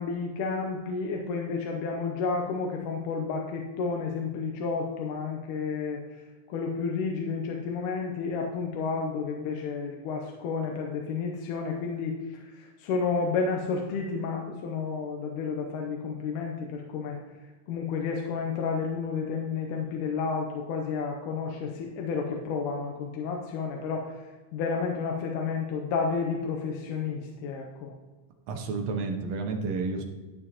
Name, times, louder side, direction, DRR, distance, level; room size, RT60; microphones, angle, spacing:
voice 1, 0.0-6.2 6.5-17.2 17.7-27.9, left 5 dB, 85° left, 1 dB, 2.3 m, -31 dB
voice 2, 28.5-30.0, right 4 dB, 70° right, 3 dB, 1.7 m, -30 dB
11.5 x 6.7 x 2.9 m, 1.3 s
omnidirectional pair, 3.6 m